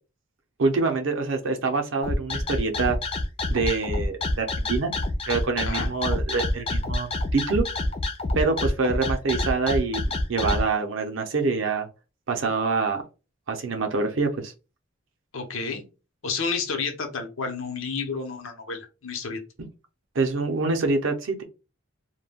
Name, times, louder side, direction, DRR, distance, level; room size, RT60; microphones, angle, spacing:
voice 1, 0.6-3.0 3.5-4.9 5.3-7.6 8.3-10.0 10.3-11.9 12.3-13.0 13.5-14.5 20.1-21.4, right 4 dB, 65° right, 0.5 m, -25 dB
sound 1, 2.0-10.6, left 2 dB, 25° left, 0.3 m, -26 dB
voice 2, 15.3-15.8 16.2-19.4, left 5 dB, 75° left, 0.7 m, -30 dB
2.2 x 2.2 x 3.3 m
head